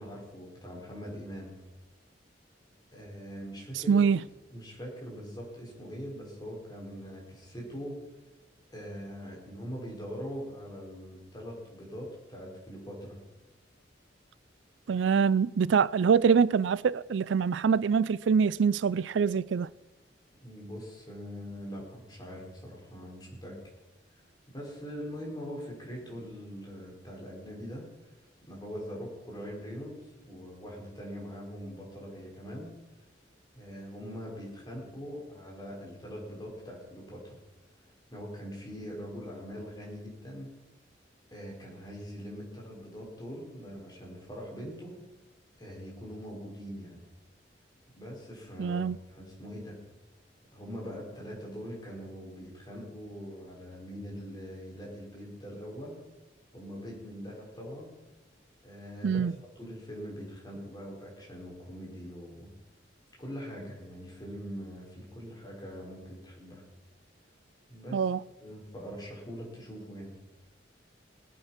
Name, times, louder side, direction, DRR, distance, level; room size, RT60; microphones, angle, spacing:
voice 1, 0.0-1.6 2.9-4.1 4.5-8.0 8.7-13.2 20.4-23.6 24.5-27.9 28.5-32.7 33.5-37.4 38.1-40.5 41.3-45.0 45.6-47.0 47.9-49.8 50.5-56.0 56.5-57.9 58.6-59.3 59.6-62.5 63.2-66.6 67.7-68.0 68.4-70.2, equal, 20° left, 5.1 m, -42 dB
voice 2, 3.9-4.2 14.9-19.7 48.6-49.0 59.0-59.3 67.9-68.2, right 6 dB, 85° right, 0.4 m, -24 dB
21.5 x 8.2 x 5.9 m
head